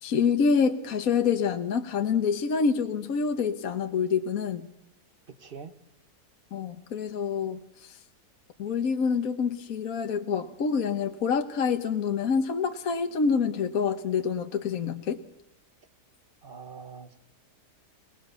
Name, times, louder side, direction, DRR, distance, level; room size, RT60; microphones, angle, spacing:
voice 1, 0.0-4.7 6.5-8.0 8.6-15.2, left 6 dB, 60° left, 7 dB, 1.5 m, -27 dB
voice 2, 5.4-5.7 16.4-17.2, right 5 dB, 35° right, 9 dB, 1.6 m, -43 dB
27.5 x 19.0 x 6.9 m, 0.77 s
omnidirectional pair, 1.7 m